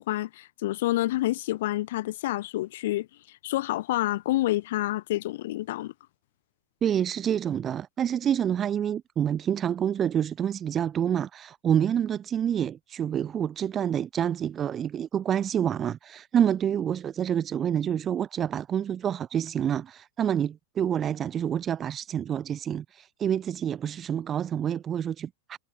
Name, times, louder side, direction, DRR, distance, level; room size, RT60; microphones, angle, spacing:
voice 1, 0.0-3.1 3.4-5.9, left 16 dB, 55° left, 1.3 m, -28 dB
voice 2, 6.8-25.6, right 9 dB, 25° right, 0.7 m, -27 dB
figure-of-eight pair, 90°, 0 cm